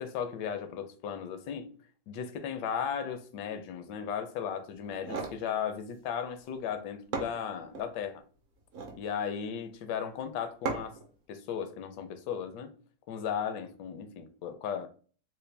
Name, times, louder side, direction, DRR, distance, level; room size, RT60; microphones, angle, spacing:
voice 1, 0.0-1.7 2.1-8.2 8.9-11.0 11.3-12.7 13.1-14.9, left 8 dB, 80° left, 1.2 m, -36 dB
sound 1, 4.8-5.4 6.7-6.8 7.1-7.9 8.6-9.0 10.7-11.1, right 4 dB, 60° right, 0.8 m, -36 dB
4.1 x 2.2 x 3.3 m
omnidirectional pair, 1.9 m